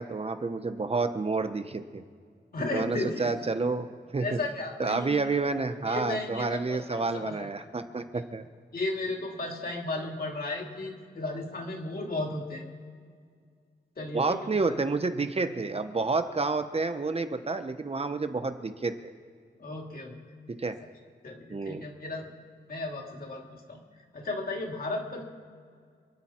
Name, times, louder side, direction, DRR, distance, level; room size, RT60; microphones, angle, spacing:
voice 1, 0.0-2.0 2.7-3.9 4.1-4.4 4.8-8.4 14.1-18.9 20.6-20.8 21.5-21.8, right 3 dB, 35° right, 8 dB, 0.9 m, -29 dB
voice 2, 2.5-3.3 4.2-5.3 5.9-7.5 8.7-12.6 14.0-14.8 19.6-20.1 21.2-22.3 22.7-23.8 24.1-25.2, left 2 dB, 50° left, 1 dB, 2.8 m, -34 dB
27.5 x 9.5 x 4.4 m, 2.1 s
wide cardioid pair, 125°, 19 cm